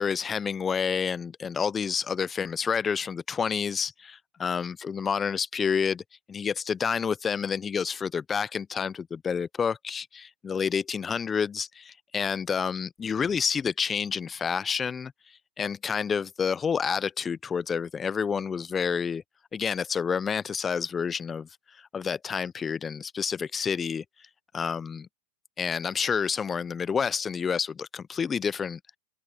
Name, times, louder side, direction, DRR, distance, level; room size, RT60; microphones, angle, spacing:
voice 1, 0.0-6.0 6.3-15.1 15.6-19.2 19.5-21.5 21.8-24.0 24.5-25.1 25.6-29.0, left 6 dB, 20° left, 0.5 m, -29 dB
open air
hypercardioid pair, 120°, 0 cm